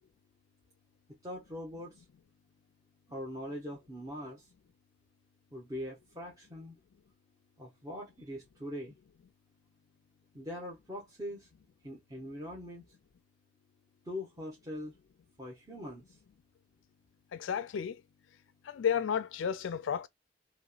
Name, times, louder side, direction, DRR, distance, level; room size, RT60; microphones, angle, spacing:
voice 1, 1.2-2.0 3.1-4.5 5.5-6.8 7.6-8.9 10.3-11.5 11.8-12.8 14.1-14.9 15.4-16.0, equal, 20° right, 0.9 m, -42 dB
voice 2, 17.3-18.0 18.6-20.1, left 7 dB, 80° left, 0.4 m, -32 dB
2.9 x 2.9 x 2.3 m
head